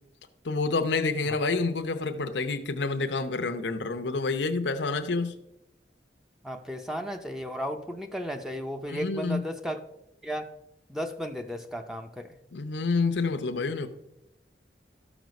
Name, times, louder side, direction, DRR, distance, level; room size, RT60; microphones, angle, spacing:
voice 1, 0.4-5.3 8.9-9.4 12.5-13.9, left 3 dB, 90° left, 7 dB, 0.8 m, -28 dB
voice 2, 6.4-9.8 10.2-10.5 10.9-12.3, equal, 5° right, 5 dB, 0.6 m, -34 dB
13.0 x 6.1 x 5.2 m, 0.87 s
head